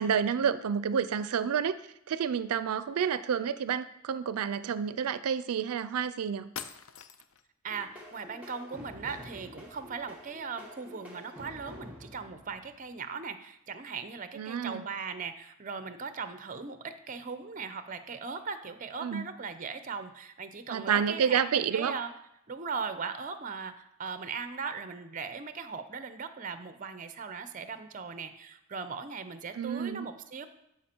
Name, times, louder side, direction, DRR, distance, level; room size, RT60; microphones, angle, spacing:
voice 1, 0.0-1.8 2.1-6.5 14.4-14.9 19.0-19.3 20.7-22.0 29.6-30.1, right 7 dB, 85° right, 14 dB, 0.4 m, -29 dB
sound 1, 6.0-6.1 6.5-7.5, left 7 dB, 65° left, 0.5 m, -43 dB
sound 2, 7.6-13.1, equal, 5° right, 1.2 m, -49 dB
voice 2, 7.6-22.1 22.5-30.5, right 5 dB, 35° right, 10 dB, 0.6 m, -39 dB
12.5 x 5.0 x 4.4 m, 0.82 s
head